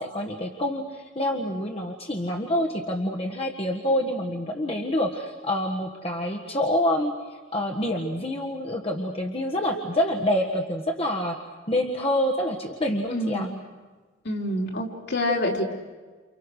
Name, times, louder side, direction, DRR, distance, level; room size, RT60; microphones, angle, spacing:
voice 1, 0.0-11.4 11.7-13.5, left 1 dB, 30° left, 1 dB, 1.6 m, -27 dB
voice 2, 13.1-13.5 14.2-15.6, left 1 dB, 60° left, 1 dB, 3.8 m, -27 dB
30.0 x 29.0 x 6.5 m, 1.4 s
head